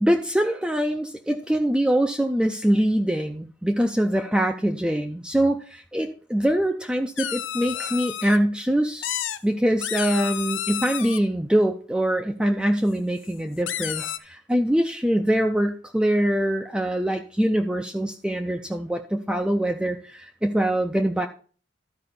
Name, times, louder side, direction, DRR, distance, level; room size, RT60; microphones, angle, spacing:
voice 1, 0.0-9.1 9.4-21.3, right 1 dB, 5° right, 4 dB, 0.4 m, -23 dB
sound 1, 7.2-8.4 9.0-9.4 9.8-11.2 13.3-13.4 13.7-14.2, left 11 dB, 85° left, 0.6 m, -30 dB
12.5 x 4.9 x 4.2 m, 0.40 s
head